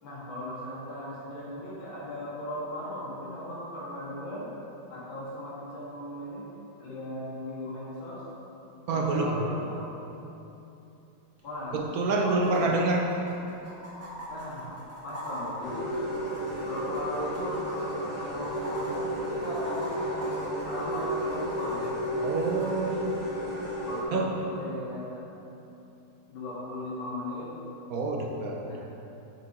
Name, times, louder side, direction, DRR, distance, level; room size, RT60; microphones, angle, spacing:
voice 1, 0.0-4.5 4.9-6.5 6.8-8.2 8.9-9.8 11.4-11.9 12.1-12.7 14.3-14.7 15.0-15.9 16.6-20.4 20.7-21.9 23.8-25.2 26.3-27.5 28.7-28.8, left 1 dB, 75° left, -7 dB, 2.7 m, -37 dB
voice 2, 8.9-9.4 11.7-13.0 22.2-23.3 24.1-24.3 27.9-28.7, right 3 dB, 65° right, 1 dB, 0.9 m, -27 dB
sound 1, 11.4-11.5 11.7-11.8 12.4-22.7 24.4-24.5, equal, 10° right, 1.5 m, -42 dB
sound 2, 15.6-24.0, equal, 35° left, 2.0 m, -32 dB
7.6 x 5.9 x 4.8 m, 3.0 s
omnidirectional pair, 2.2 m